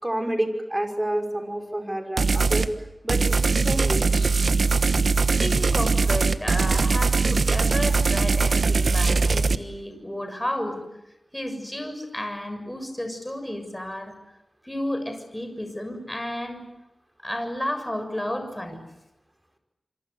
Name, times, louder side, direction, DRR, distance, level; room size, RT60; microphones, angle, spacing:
voice 1, 0.0-2.7 3.0-4.3, right 1 dB, 20° right, 4 dB, 5.7 m, -29 dB
sound 1, 2.2-2.7 3.1-9.6, right 4 dB, 75° right, 1.3 m, -21 dB
voice 2, 5.4-10.8 11.3-14.1 14.6-16.7 17.2-18.8, left 1 dB, 10° left, 7 dB, 6.8 m, -32 dB
27.5 x 26.0 x 8.2 m, 0.91 s
wide cardioid pair, 65°, 0 cm